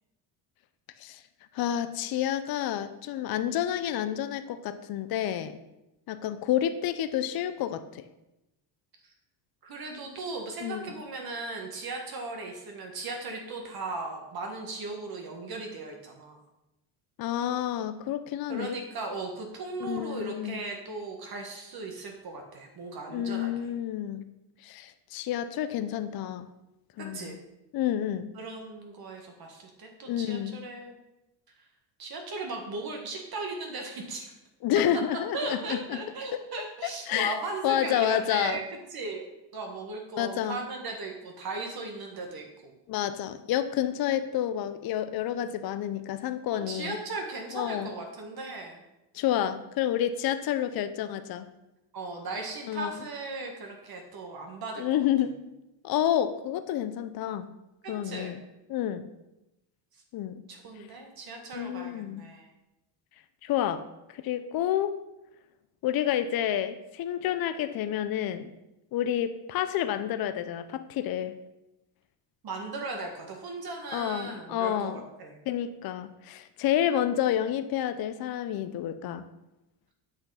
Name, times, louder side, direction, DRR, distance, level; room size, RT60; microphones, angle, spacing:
voice 1, 1.5-5.6 6.1-8.0 10.6-10.9 17.2-18.8 19.8-20.6 23.1-24.2 24.6-26.5 27.0-27.4 27.7-28.3 30.1-30.6 34.6-36.0 36.3-36.4 37.1-37.4 37.6-38.6 40.2-40.7 42.9-47.0 47.5-47.9 49.1-51.5 52.7-52.9 54.8-55.3 55.8-57.5 57.9-58.4 58.7-59.1 60.1-60.4 61.5-62.2 63.4-63.8 64.1-64.9 65.8-68.5 68.9-71.4 73.9-75.0 75.5-79.2, left 11 dB, 45° left, 10 dB, 0.6 m, -29 dB
voice 2, 9.6-16.4 18.5-23.5 27.0-27.4 28.3-30.9 32.0-34.3 35.3-38.6 38.9-39.3 39.5-42.7 46.7-48.8 51.9-55.0 57.8-58.3 60.5-62.5 72.4-75.4, right 3 dB, 45° right, 2 dB, 1.6 m, -37 dB
8.3 x 5.6 x 5.6 m, 0.95 s
cardioid pair, 105°, 49 cm